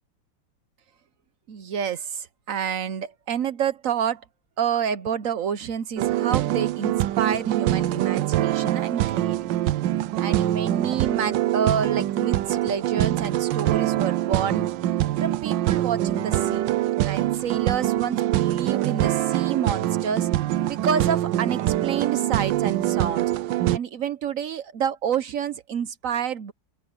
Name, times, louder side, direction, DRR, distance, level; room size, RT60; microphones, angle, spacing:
voice 1, 1.5-4.2 4.6-9.5 10.2-14.7 15.2-16.6 17.0-20.3 20.7-23.3 23.7-26.5, right 7 dB, 60° right, 0.9 m, -28 dB
sound 1, 6.0-23.8, right 14 dB, 80° right, 1.3 m, -24 dB
open air
omnidirectional pair, 2.0 m